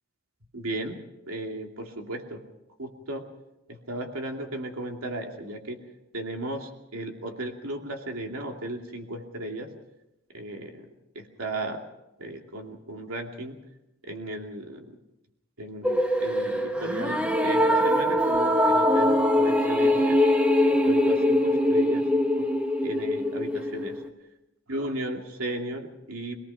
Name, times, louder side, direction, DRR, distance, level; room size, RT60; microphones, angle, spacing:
voice 1, 0.5-1.0 1.3-2.4 2.8-3.2 3.7-5.8 6.1-9.7 10.3-10.9 11.1-11.8 12.2-13.6 14.0-14.9 15.6-20.2 20.7-22.1 22.4-22.5 22.8-24.0 24.7-26.4, right 1 dB, 90° right, 2 dB, 2.7 m, -35 dB
sound 1, 15.8-24.1, left 1 dB, 5° right, 1.3 m, -23 dB
25.5 x 18.5 x 5.7 m, 0.91 s
head